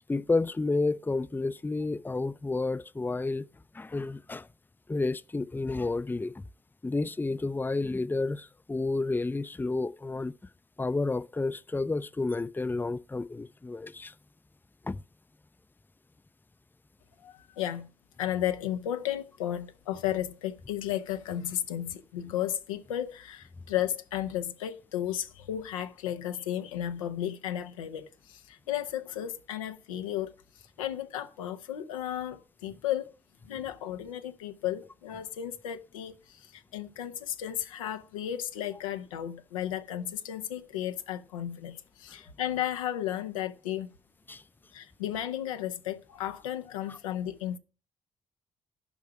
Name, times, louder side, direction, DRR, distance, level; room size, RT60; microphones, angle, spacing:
voice 1, 0.1-3.5 3.7-4.5 4.9-6.5 6.8-10.3 10.8-14.1 14.8-15.0 44.3-44.4 46.9-47.0, left 3 dB, 10° left, 0.5 m, -30 dB
voice 2, 17.2-17.9 18.2-30.3 30.8-33.1 33.5-36.2 36.5-43.9 44.7-47.6, left 11 dB, 85° left, 0.7 m, -34 dB
11.0 x 5.7 x 8.6 m
figure-of-eight pair, 45°, 17 cm